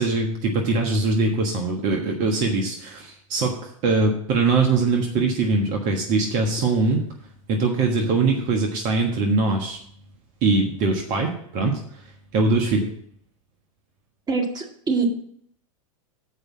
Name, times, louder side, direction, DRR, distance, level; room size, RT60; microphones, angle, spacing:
voice 1, 0.0-7.0 7.5-9.8 10.4-12.9, right 3 dB, 45° right, 2 dB, 1.4 m, -22 dB
voice 2, 14.3-15.1, right 5 dB, 20° right, 3 dB, 1.9 m, -24 dB
8.1 x 5.1 x 7.5 m, 0.65 s
hypercardioid pair, 100°, 18 cm